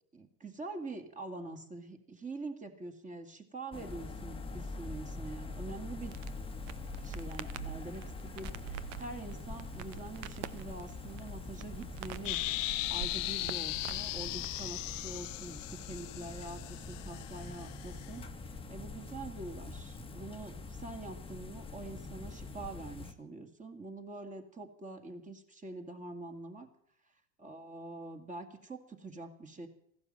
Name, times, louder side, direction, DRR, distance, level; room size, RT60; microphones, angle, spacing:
voice 1, 0.1-6.1 7.0-12.4 12.9-26.7 27.4-29.7, right 2 dB, 20° right, 6 dB, 2.1 m, -45 dB
sound 1, 3.7-23.1, left 3 dB, 15° left, 1.2 m, -44 dB
Crackle, 6.1-14.7, right 11 dB, 65° right, 0.9 m, -46 dB
sound 2, 12.2-18.1, left 20 dB, 70° left, 0.7 m, -38 dB
15.0 x 12.0 x 7.6 m, 0.71 s
hypercardioid pair, 105°, 40 cm